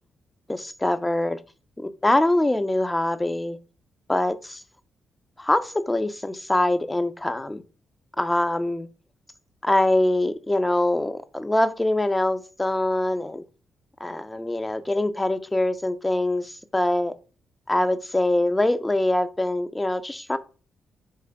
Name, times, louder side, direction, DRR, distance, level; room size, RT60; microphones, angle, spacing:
voice 1, 0.5-1.4 1.8-3.6 4.1-4.6 5.4-7.6 8.2-8.9 9.6-13.4 14.0-17.1 17.7-20.4, left 1 dB, 20° left, 11 dB, 0.5 m, -24 dB
3.8 x 3.2 x 3.6 m, 0.35 s
hypercardioid pair, 45°, 0 cm